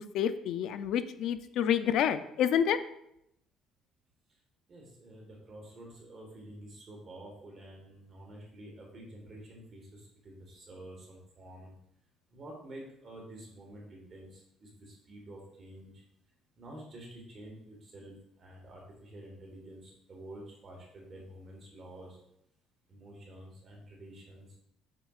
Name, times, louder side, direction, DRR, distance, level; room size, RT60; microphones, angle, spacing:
voice 1, 0.1-2.8, left 9 dB, 65° left, 12 dB, 0.4 m, -28 dB
voice 2, 4.7-11.7 12.3-15.9 16.6-22.2 22.9-24.5, right 1 dB, 35° right, -1 dB, 1.5 m, -49 dB
6.6 x 6.1 x 2.4 m, 0.77 s
cardioid pair, 135°, 0 cm